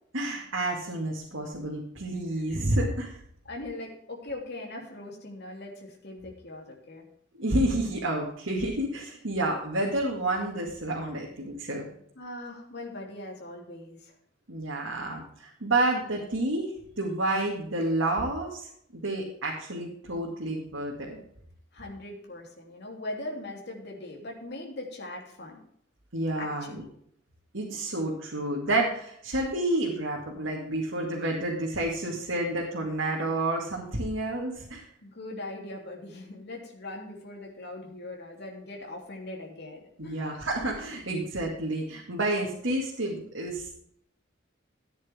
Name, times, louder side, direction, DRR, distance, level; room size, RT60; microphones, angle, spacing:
voice 1, 0.1-3.2 7.4-11.8 14.5-21.2 26.1-26.8 27.5-34.8 40.0-43.7, right 1 dB, 90° right, -2 dB, 2.2 m, -30 dB
voice 2, 2.4-2.7 3.4-7.1 12.1-14.1 21.7-25.6 26.4-26.9 35.0-40.3, left 2 dB, 60° left, -1 dB, 3.2 m, -40 dB
14.5 x 9.7 x 3.6 m, 0.68 s
head